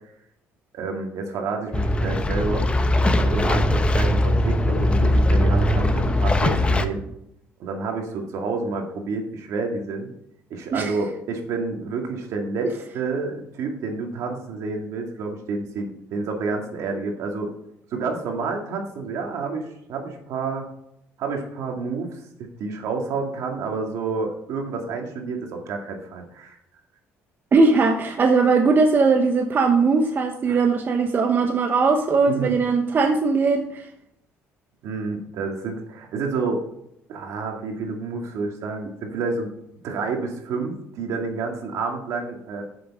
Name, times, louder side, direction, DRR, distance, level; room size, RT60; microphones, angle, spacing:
voice 1, 0.7-2.7 3.1-7.1 7.6-10.1 10.5-17.5 17.9-20.7 21.2-22.2 22.6-26.6 30.5-30.6 32.3-32.6 34.8-36.6 37.1-39.5 39.8-42.6, right 4 dB, 70° right, 2 dB, 2.3 m, -29 dB
The sound of River Thames at Shadwell, 1.7-6.9, left 1 dB, 20° left, 0.9 m, -20 dB
voice 2, 27.5-33.9, right 4 dB, 40° right, 4 dB, 1.0 m, -19 dB
7.7 x 6.8 x 5.6 m, 0.77 s
cardioid pair, 90°, 5 cm